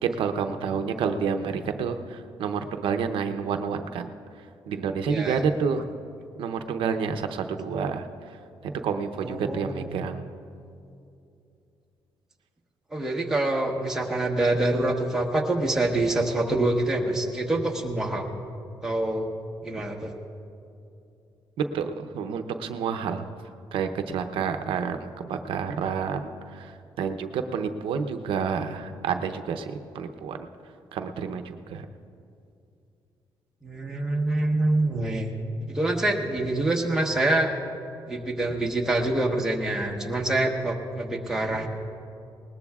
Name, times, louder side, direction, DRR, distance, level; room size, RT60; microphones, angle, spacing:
voice 1, 0.0-4.1 4.7-5.9 6.4-8.4 8.6-10.2 21.6-23.2 23.7-30.5 30.9-31.9, right 6 dB, 85° right, 6 dB, 0.7 m, -29 dB
voice 2, 5.1-5.4 9.2-9.9 12.9-18.3 18.8-19.3 19.6-20.1 33.6-35.3 35.6-37.5 38.1-41.7, right 2 dB, 5° right, -1 dB, 1.1 m, -26 dB
20.5 x 19.5 x 2.4 m, 2.6 s
cardioid pair, 155°, 9 cm